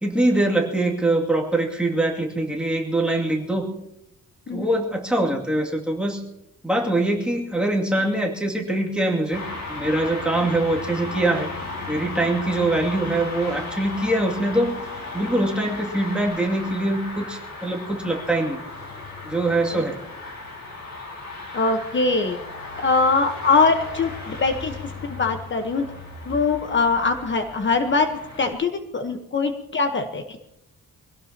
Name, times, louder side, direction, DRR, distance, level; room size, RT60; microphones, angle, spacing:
voice 1, 0.0-3.8 4.5-6.2 6.6-9.4 9.7-11.5 11.9-14.8 15.1-18.6 19.2-20.0, right 1 dB, 5° right, -1 dB, 2.5 m, -23 dB
sound 1, 9.3-28.5, left 3 dB, 65° left, 5.7 m, -36 dB
voice 2, 21.5-22.4 22.8-25.9 26.3-28.1 28.4-30.4, left 4 dB, 40° left, 6 dB, 1.2 m, -22 dB
24.0 x 17.5 x 2.9 m, 0.81 s
wide cardioid pair, 150°, 30 cm